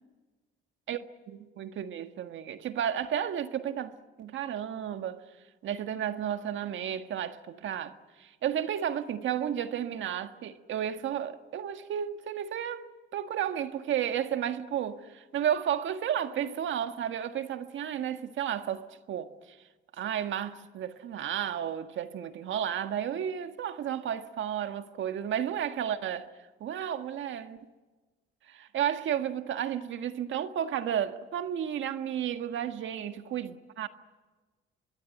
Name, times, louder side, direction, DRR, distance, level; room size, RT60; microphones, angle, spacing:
voice 1, 1.3-5.2 5.6-19.6 19.9-26.3 26.6-27.6 28.5-33.9, right 9 dB, 75° right, 1.6 m, -32 dB
25.0 x 22.5 x 9.4 m
cardioid pair, 90°, 20 cm